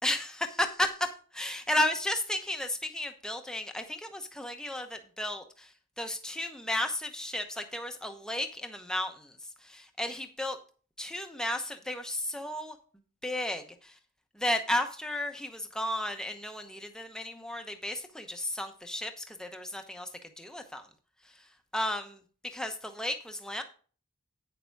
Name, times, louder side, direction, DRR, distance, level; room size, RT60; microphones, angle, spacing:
voice 1, 0.0-1.1 1.3-5.7 6.0-9.3 9.6-10.6 11.0-12.8 13.2-14.0 14.3-20.1 20.4-20.9 21.7-23.6, left 1 dB, 5° left, 5 dB, 0.9 m, -33 dB
9.2 x 6.7 x 4.6 m, 0.40 s
head